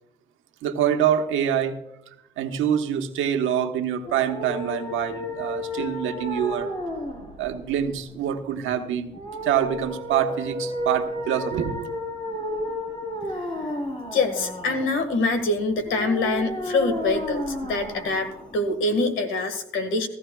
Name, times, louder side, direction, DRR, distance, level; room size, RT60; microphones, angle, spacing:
voice 1, 0.6-1.8 2.4-6.7 7.4-9.1 9.4-11.9, right 9 dB, 85° right, 6 dB, 1.2 m, -25 dB
sound 1, 4.0-19.0, left 1 dB, 25° left, 3.6 m, -33 dB
voice 2, 14.1-20.1, left 2 dB, 80° left, 8 dB, 1.7 m, -25 dB
17.0 x 14.0 x 2.3 m, 0.84 s
cardioid pair, 90°, 20 cm